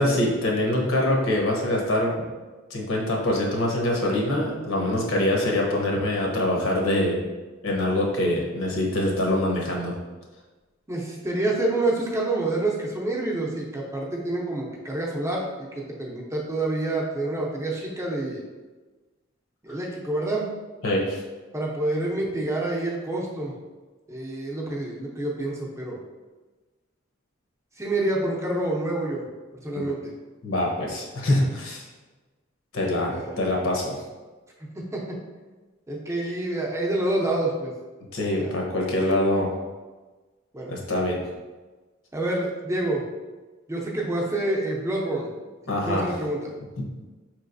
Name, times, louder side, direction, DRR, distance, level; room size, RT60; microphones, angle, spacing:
voice 1, 0.0-2.2 2.7-7.2 7.6-9.9 19.7-19.8 20.8-21.2 29.7-29.9 30.4-31.9 32.7-34.0 38.1-39.5 40.7-41.2 45.7-46.1, left 1 dB, 80° left, -1 dB, 0.9 m, -24 dB
voice 2, 10.9-18.4 19.6-20.5 21.5-23.5 24.1-26.0 27.8-29.3 29.6-30.1 33.1-33.3 34.7-35.2 35.9-37.7 38.4-38.5 40.5-40.7 42.1-43.0 43.7-45.3 45.7-46.5, right 2 dB, 15° right, -3 dB, 0.6 m, -27 dB
4.8 x 3.0 x 2.6 m, 1.3 s
head